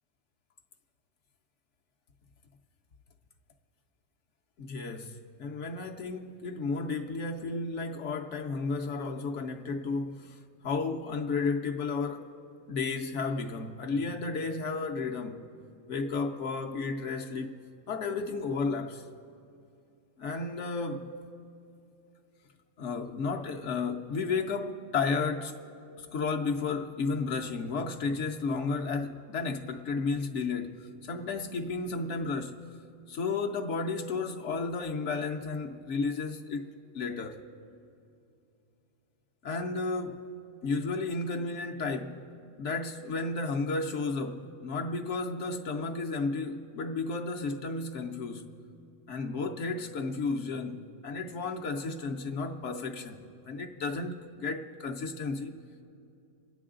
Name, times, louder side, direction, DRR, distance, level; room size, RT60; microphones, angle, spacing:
voice 1, 4.6-10.4 10.6-12.3 12.7-15.5 15.9-17.6 17.9-19.0 20.2-21.2 22.8-25.5 26.0-32.6 33.1-36.7 36.9-37.4 39.4-40.3 40.6-42.2 42.6-48.5 49.1-55.6, left 4 dB, 70° left, 1.0 m, -33 dB
27.0 x 9.3 x 3.7 m
omnidirectional pair, 1.3 m